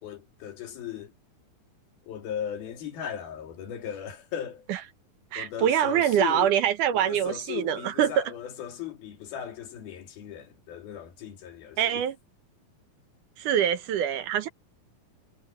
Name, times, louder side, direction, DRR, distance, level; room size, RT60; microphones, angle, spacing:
voice 1, 0.0-1.1 2.1-4.7 5.4-6.6 6.9-12.0, left 10 dB, 90° left, 4.3 m, -37 dB
voice 2, 5.3-8.2 11.8-12.2 13.4-14.5, right 10 dB, 70° right, 2.3 m, -24 dB
omnidirectional pair, 4.2 m